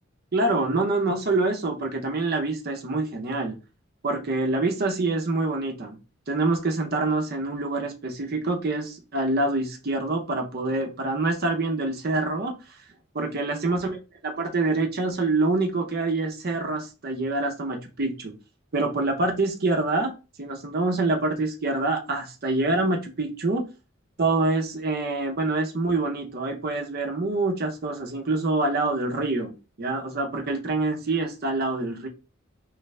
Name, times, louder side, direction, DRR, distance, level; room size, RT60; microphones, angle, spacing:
voice 1, 0.3-3.6 4.0-5.9 6.3-12.5 13.1-14.0 14.2-18.3 18.7-20.1 20.4-23.6 24.2-32.1, right 2 dB, 50° right, 2 dB, 0.7 m, -26 dB
3.2 x 2.4 x 3.2 m, 0.32 s
head